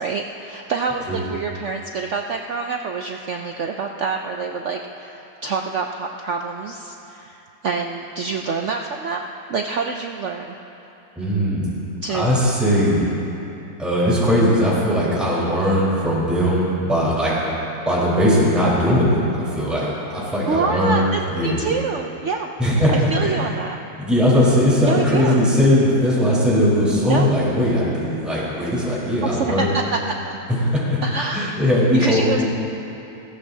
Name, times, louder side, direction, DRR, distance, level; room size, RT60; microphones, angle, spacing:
voice 1, 0.0-10.5 12.0-12.3 20.5-22.5 22.9-23.8 24.9-25.5 27.1-27.3 29.2-30.4 31.0-32.4, right 4 dB, 70° right, 2 dB, 0.7 m, -26 dB
voice 2, 11.2-11.7 12.1-13.0 13.8-17.3 17.9-19.2 19.5-21.6 22.6-22.9 23.2-23.3 24.0-29.7 30.5-31.0 31.3-32.3, equal, ahead, -9 dB, 3.9 m, -19 dB
21.0 x 16.5 x 2.7 m, 3.0 s
omnidirectional pair, 1.9 m